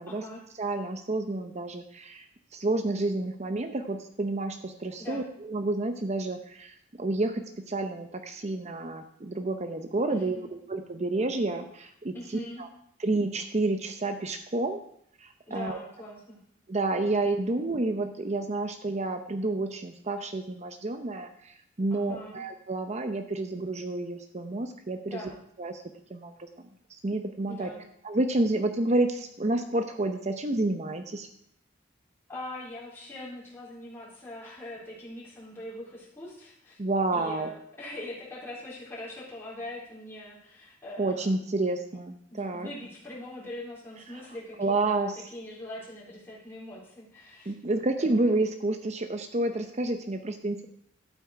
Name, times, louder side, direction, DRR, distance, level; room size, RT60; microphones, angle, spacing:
voice 1, 0.1-0.4 5.0-5.3 10.1-10.5 12.1-12.6 15.5-16.4 21.9-22.4 25.1-25.4 27.5-27.9 32.3-36.8 37.1-41.4 42.3-48.2, left 1 dB, 15° left, -7 dB, 4.0 m, -42 dB
voice 2, 0.6-2.3 2.5-12.7 13.0-14.8 15.2-15.8 16.7-25.2 25.6-25.8 26.1-27.7 28.0-31.3 36.8-37.5 41.0-42.7 44.1-44.2 44.6-45.2 47.5-50.7, right 2 dB, 35° right, 7 dB, 0.7 m, -30 dB
11.5 x 8.4 x 4.8 m, 0.69 s
head